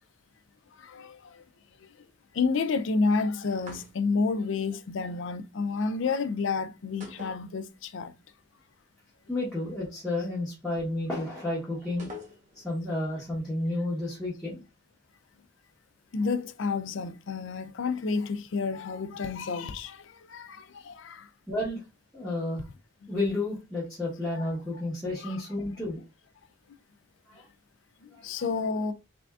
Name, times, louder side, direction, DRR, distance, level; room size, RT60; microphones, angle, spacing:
voice 1, 2.4-8.1 16.1-20.0 20.3-20.6 20.9-21.2 24.3-24.4 25.2-25.4 28.2-28.9, left 4 dB, 65° left, 0.4 m, -29 dB
sound 1, 3.6-4.3 7.0-8.1 8.3-8.4 12.0-12.8, left 2 dB, 35° right, 1.0 m, -45 dB
voice 2, 9.3-12.1 12.5-14.6 21.5-21.8 22.1-22.6 23.1-26.0 27.3-27.5 28.1-28.3, left 2 dB, 5° left, 1.1 m, -31 dB
3.7 x 3.4 x 2.3 m
head